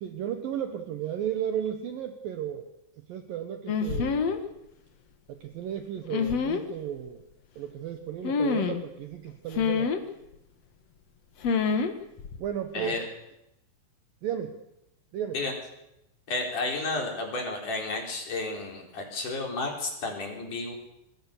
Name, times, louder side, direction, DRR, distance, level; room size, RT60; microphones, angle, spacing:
voice 1, 0.0-2.7 3.0-4.3 5.3-7.2 7.6-9.9 12.4-13.0 14.2-14.6 15.1-15.4, right 9 dB, 65° right, 7 dB, 2.4 m, -34 dB
sound 1, 3.7-4.4 6.1-6.6 8.2-8.8 9.5-10.0 11.4-11.9 12.2-12.5, left 5 dB, 65° left, 1.6 m, -26 dB
voice 2, 16.3-20.7, left 3 dB, 45° left, 2 dB, 5.4 m, -32 dB
25.5 x 21.0 x 6.8 m, 0.85 s
omnidirectional pair, 5.4 m